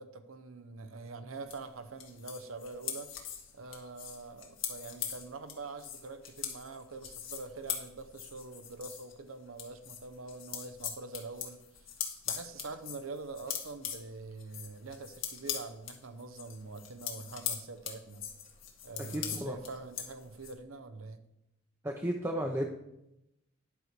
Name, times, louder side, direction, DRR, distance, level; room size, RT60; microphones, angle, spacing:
voice 1, 0.0-3.1 3.5-11.6 12.2-18.3 18.8-21.2, right 3 dB, 85° right, 10 dB, 0.8 m, -44 dB
sound 1, 1.5-9.1 9.5-20.5, left 9 dB, 70° left, 1.7 m, -41 dB
voice 2, 19.1-19.6 21.8-22.7, right 1 dB, 15° right, 1 dB, 0.7 m, -33 dB
10.0 x 4.6 x 6.6 m, 0.85 s
head